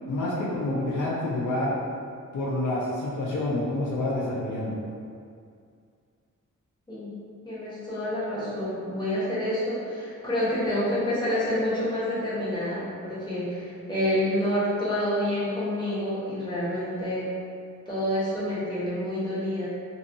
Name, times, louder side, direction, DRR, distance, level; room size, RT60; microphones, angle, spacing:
voice 1, 0.1-1.7 2.3-4.8, left 1 dB, 70° left, -5 dB, 0.5 m, -28 dB
voice 2, 7.4-17.2 17.9-19.7, left 1 dB, 15° left, -11 dB, 1.0 m, -28 dB
2.7 x 2.3 x 2.6 m, 2.3 s
wide cardioid pair, 105°, 31 cm